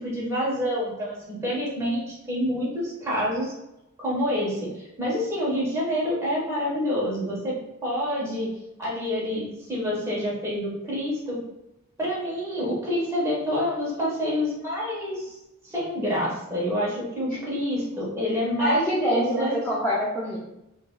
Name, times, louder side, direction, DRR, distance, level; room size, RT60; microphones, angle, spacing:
voice 1, 0.0-3.5 4.0-7.5 7.8-8.5 8.8-9.4 9.7-11.4 12.0-15.4 15.6-19.6, equal, 15° right, -6 dB, 1.2 m, -27 dB
voice 2, 18.6-20.4, equal, 10° left, -7 dB, 0.5 m, -25 dB
4.8 x 2.6 x 2.2 m, 0.89 s
head